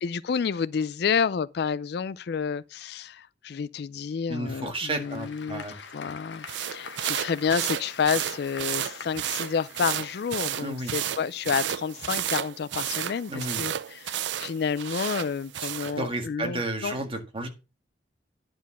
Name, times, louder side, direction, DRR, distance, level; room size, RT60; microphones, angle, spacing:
voice 1, 0.0-5.6 5.9-17.0, left 6 dB, 65° left, 0.4 m, -29 dB
voice 2, 4.3-5.7 10.6-10.9 13.3-13.6 15.6-15.7 16.0-17.5, right 2 dB, 30° right, 1.8 m, -32 dB
Applause / Crowd, 4.5-11.0, left 6 dB, 90° left, 1.0 m, -45 dB
sound 1, 6.5-16.0, right 11 dB, 85° right, 0.5 m, -32 dB
10.5 x 4.5 x 7.0 m
head